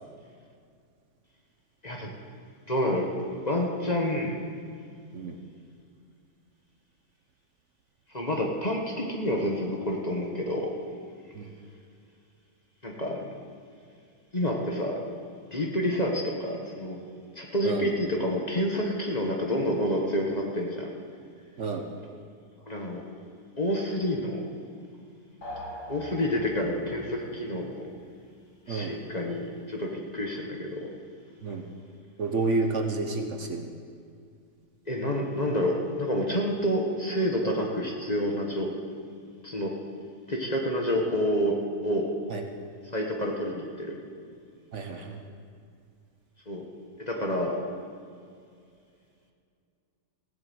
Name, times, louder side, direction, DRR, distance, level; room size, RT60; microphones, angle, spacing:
voice 1, 2.7-3.1 3.4-4.4 8.1-10.7 12.8-13.2 14.3-15.0 15.5-17.0 17.3-20.9 22.7-23.0 23.6-24.4 25.9-27.9 28.7-30.9 34.9-38.7 39.4-39.7 40.3-42.1 42.9-44.0 46.5-46.6 47.0-47.6, equal, 30° left, 0 dB, 1.4 m, -28 dB
sound 1, 25.4-26.9, equal, 85° left, 2.6 m, -41 dB
voice 2, 32.2-33.7 42.3-42.4 44.7-45.2, right 3 dB, 55° right, 4 dB, 1.2 m, -30 dB
16.0 x 7.9 x 7.9 m, 2.3 s
omnidirectional pair, 1.6 m